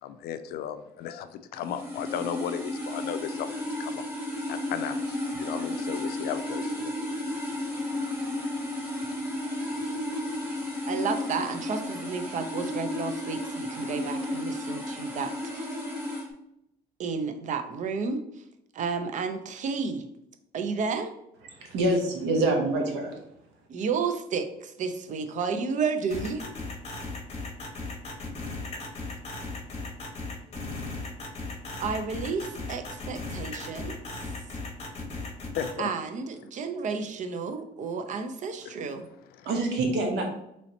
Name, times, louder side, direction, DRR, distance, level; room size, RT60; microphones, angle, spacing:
voice 1, 0.0-3.5 3.8-4.0 4.5-6.9 35.5-35.9 39.4-39.5, left 9 dB, 70° left, 10 dB, 0.4 m, -35 dB
sound 1, 1.6-16.3, left 1 dB, 10° right, 1.3 m, -33 dB
voice 2, 10.9-15.8 17.0-18.4 18.7-20.0 20.5-21.1 23.7-26.4 31.8-34.0 35.8-39.1, right 5 dB, 45° right, 8 dB, 0.5 m, -31 dB
voice 3, 21.6-23.2 39.4-40.3, right 2 dB, 85° right, 2 dB, 0.9 m, -26 dB
sound 2, 26.1-35.7, left 3 dB, 40° left, 1.0 m, -36 dB
3.1 x 2.8 x 4.0 m, 0.79 s
cardioid pair, 110°, 17 cm